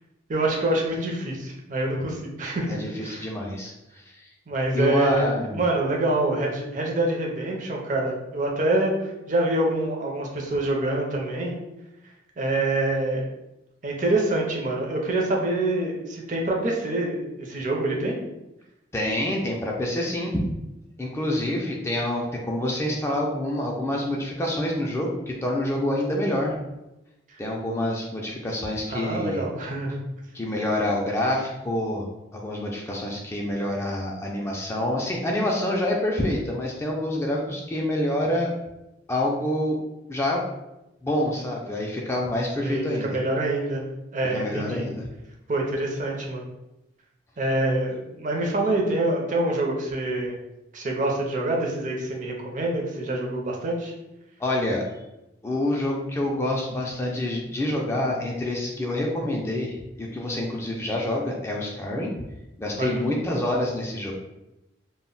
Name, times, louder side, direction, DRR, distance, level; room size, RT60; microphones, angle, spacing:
voice 1, 0.3-3.3 4.5-5.2 5.5-11.6 12.4-13.2 13.8-18.2 27.3-27.4 28.9-30.0 42.6-43.8 44.1-44.9 45.5-46.5 47.4-50.4 50.7-53.9 62.8-63.1, right 2 dB, 45° right, 0 dB, 0.5 m, -26 dB
voice 2, 2.7-3.7 4.1-4.3 4.7-5.6 18.9-20.5 21.0-26.6 27.4-29.5 30.3-38.5 39.1-39.8 40.1-40.4 41.0-43.2 44.3-45.1 54.4-54.9 55.4-62.1 62.6-64.1, left 1 dB, 15° left, -1 dB, 0.3 m, -27 dB
2.1 x 2.0 x 3.7 m, 0.93 s
head